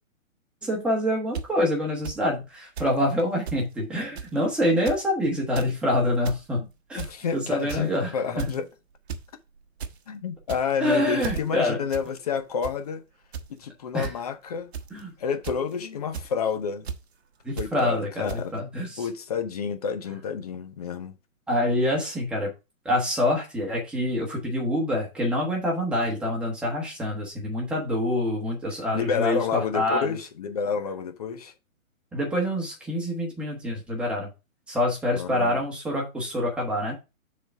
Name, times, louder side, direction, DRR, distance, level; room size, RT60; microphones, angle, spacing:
voice 1, 0.6-6.6 6.9-7.0 7.3-8.1 8.4-8.5 10.8-11.8 13.9-14.1 14.9-15.1 17.4-19.0 21.5-22.5 22.8-30.2 32.1-34.3 34.7-36.9, left 1 dB, ahead, 1.2 m, -26 dB
sound 1, 1.3-1.4 2.0-2.2 2.8-2.9 3.2-3.6 4.1-4.4 4.7-5.0 5.4-5.7 6.1-6.4 7.0-7.3 7.7-8.0 8.4-8.6 9.1-9.2 9.6-9.9 10.4-10.8 11.2-11.4 11.9-12.1 12.4-12.7 13.3-13.5 14.0-14.1 14.7-15.0 15.4-15.7 16.1-16.3 16.8-17.0 17.6-17.7 18.3-18.4, right 6 dB, 50° right, 1.1 m, -34 dB
voice 2, 7.0-8.7 10.1-13.0 13.5-14.7 15.2-16.9 17.6-18.5 19.0-21.2 28.9-31.5 35.1-35.6, left 6 dB, 30° left, 0.7 m, -29 dB
6.7 x 4.1 x 4.6 m
hypercardioid pair, 160°, 41 cm